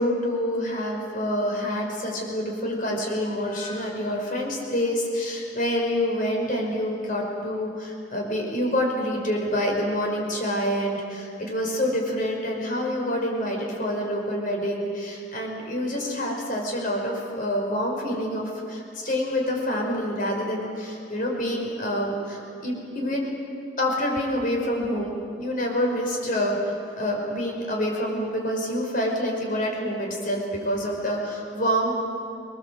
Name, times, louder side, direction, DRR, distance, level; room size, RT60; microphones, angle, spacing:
voice 1, 0.0-23.3 23.8-31.9, equal, 50° left, 0 dB, 5.4 m, -27 dB
26.5 x 21.5 x 7.8 m, 2.5 s
head